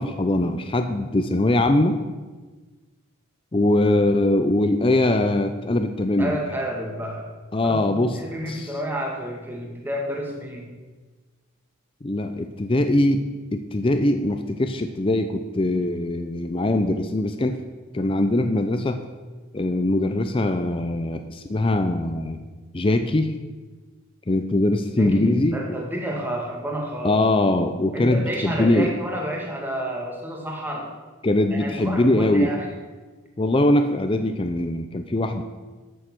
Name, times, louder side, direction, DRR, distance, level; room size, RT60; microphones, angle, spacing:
voice 1, 0.0-2.0 3.5-6.4 7.5-8.2 8.5-8.7 12.0-13.2 13.5-17.6 17.9-19.0 19.5-22.4 22.7-23.3 24.3-25.8 27.0-28.9 31.2-32.5 33.4-35.4, left 1 dB, 25° left, 7 dB, 0.5 m, -22 dB
voice 2, 6.2-7.3 7.6-10.7 25.0-27.2 27.9-30.9 31.5-32.7, equal, 10° right, 0 dB, 1.8 m, -30 dB
13.0 x 7.1 x 6.0 m, 1.3 s
head